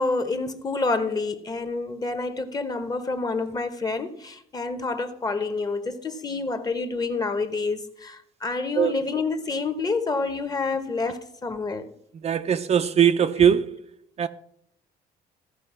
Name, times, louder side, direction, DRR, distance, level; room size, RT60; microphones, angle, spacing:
voice 1, 0.0-11.9, left 3 dB, 20° left, 1.0 m, -28 dB
voice 2, 12.2-13.8 14.2-14.3, right 8 dB, 40° right, 0.5 m, -20 dB
15.0 x 5.4 x 5.5 m
cardioid pair, 110°, 17 cm